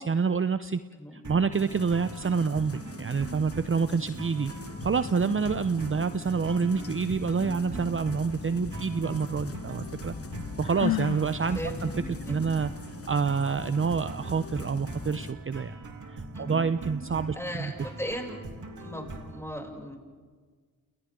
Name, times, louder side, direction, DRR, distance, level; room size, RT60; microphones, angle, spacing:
voice 1, 0.0-0.8 1.1-4.5 4.8-10.1 10.6-11.9 12.3-15.8 16.1-17.7, right 5 dB, 35° right, 12 dB, 0.8 m, -28 dB
sound 1, 1.2-19.4, right 2 dB, 55° right, 3.6 m, -42 dB
sound 2, 1.5-15.3, left 4 dB, 40° left, 1.5 m, -41 dB
Sigh, 10.6-11.3, left 15 dB, 70° left, 0.6 m, -29 dB
voice 2, 17.3-18.4 18.8-20.0, equal, 5° left, 0 dB, 7.5 m, -37 dB
30.0 x 29.5 x 3.9 m, 1.5 s
supercardioid pair, 40°, 37 cm